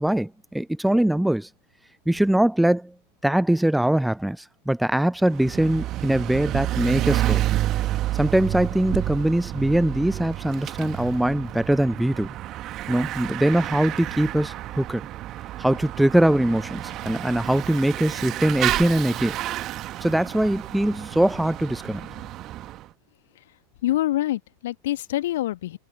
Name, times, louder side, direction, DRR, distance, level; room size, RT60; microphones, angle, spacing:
voice 1, 0.0-1.5 2.1-2.9 3.2-7.5 8.1-12.3 12.9-15.0 15.6-19.4 20.0-22.0, right 1 dB, 5° right, 0.6 m, -22 dB
Bicycle / Mechanisms, 5.2-22.8, right 14 dB, 35° right, 1.9 m, -30 dB
voice 2, 23.8-25.8, left 14 dB, 55° left, 1.9 m, -25 dB
figure-of-eight pair, 90°, 0 cm